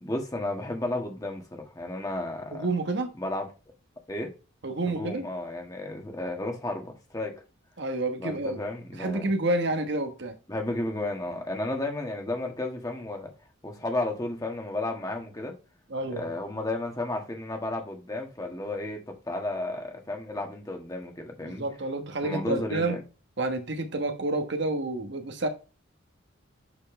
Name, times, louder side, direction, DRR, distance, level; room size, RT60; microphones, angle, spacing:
voice 1, 0.0-2.7 3.2-3.5 4.1-4.3 4.8-7.3 8.2-9.3 10.5-13.3 13.6-15.5 16.1-21.6 22.2-23.0, left 2 dB, 15° left, 1.5 m, -33 dB
voice 2, 2.5-3.1 4.6-5.3 7.8-8.6 9.0-10.4 15.9-16.3 21.4-23.0 23.4-25.5, right 2 dB, 55° right, 1.3 m, -29 dB
8.3 x 4.5 x 3.2 m
head